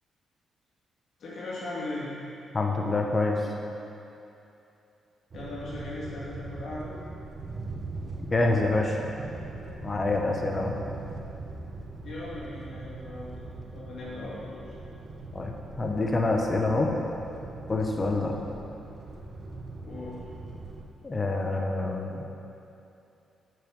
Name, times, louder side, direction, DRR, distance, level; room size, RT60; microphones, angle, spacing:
voice 1, 1.2-2.1 5.3-6.9 12.0-13.3 13.7-14.6 19.8-20.2, left 2 dB, 60° left, -7 dB, 2.2 m, -38 dB
voice 2, 2.5-3.4 8.3-9.0 9.8-10.7 15.3-16.9 17.7-18.3 21.0-22.2, left 2 dB, 25° left, 1 dB, 0.9 m, -26 dB
sound 1, 5.3-20.9, right 3 dB, 40° right, 0.7 m, -41 dB
7.8 x 5.3 x 6.2 m, 2.8 s
cardioid pair, 130°, 0 cm